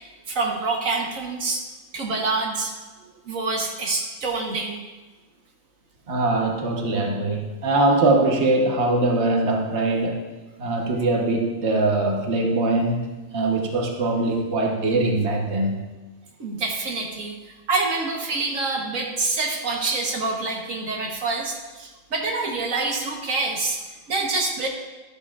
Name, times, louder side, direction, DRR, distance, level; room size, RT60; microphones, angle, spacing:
voice 1, 0.3-1.6 1.9-2.7 3.3-4.8 16.4-23.8 24.1-24.7, right 3 dB, 80° right, 0 dB, 1.6 m, -26 dB
voice 2, 6.1-10.2 10.6-15.9, right 2 dB, 55° right, 0 dB, 1.4 m, -22 dB
12.0 x 12.0 x 2.4 m, 1.2 s
omnidirectional pair, 1.4 m